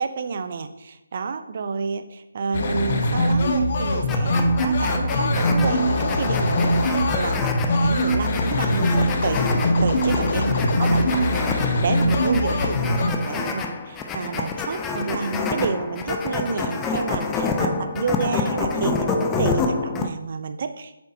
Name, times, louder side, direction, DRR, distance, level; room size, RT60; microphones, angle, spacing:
voice 1, 0.0-9.5 9.8-21.0, right 5 dB, 45° right, 9 dB, 0.6 m, -29 dB
sound 1, 2.5-13.1, left 1 dB, 40° left, 0.9 m, -22 dB
sound 2, 4.1-20.1, left 4 dB, 15° left, 0.5 m, -28 dB
8.0 x 6.9 x 2.8 m, 0.91 s
figure-of-eight pair, 155°, 0 cm